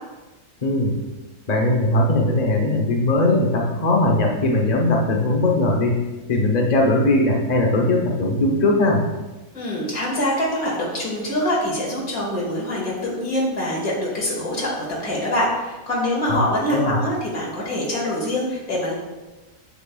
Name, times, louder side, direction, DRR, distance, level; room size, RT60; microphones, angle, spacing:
voice 1, 0.6-1.0 1.5-6.0 6.3-9.0 16.3-17.0, left 2 dB, 35° left, 0 dB, 0.8 m, -19 dB
voice 2, 9.5-14.7 15.0-18.9, left 1 dB, 70° left, -5 dB, 2.6 m, -24 dB
8.2 x 7.0 x 2.3 m, 1.1 s
omnidirectional pair, 1.6 m